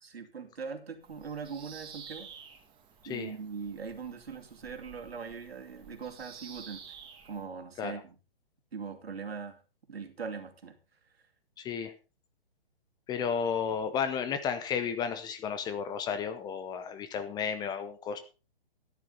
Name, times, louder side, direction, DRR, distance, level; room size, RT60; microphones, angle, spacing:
voice 1, 0.0-2.3 3.0-6.8 7.2-8.1 8.7-9.6 9.9-10.8, right 5 dB, 75° right, 6 dB, 2.6 m, -41 dB
Bird vocalization bird call bird song, 1.0-7.4, right 6 dB, 15° right, 2.2 m, -51 dB
voice 2, 11.6-11.9 13.1-18.2, left 7 dB, 15° left, 10 dB, 0.8 m, -33 dB
13.5 x 10.0 x 4.0 m, 0.33 s
hypercardioid pair, 135°, 30 cm